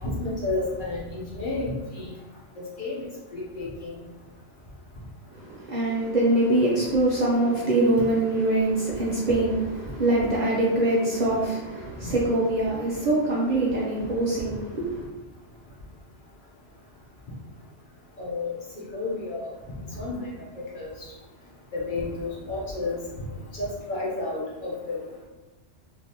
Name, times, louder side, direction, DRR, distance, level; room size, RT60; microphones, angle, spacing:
voice 1, 0.0-2.1 2.8-3.9 12.0-12.1 18.2-18.5 18.9-19.5 19.9-20.3 20.7-20.9 21.7-23.0 23.5-25.0, left 2 dB, 50° left, -5 dB, 0.9 m, -31 dB
voice 2, 5.3-15.1, right 2 dB, 50° right, -5 dB, 0.5 m, -24 dB
3.6 x 2.6 x 2.8 m, 1.1 s
omnidirectional pair, 1.2 m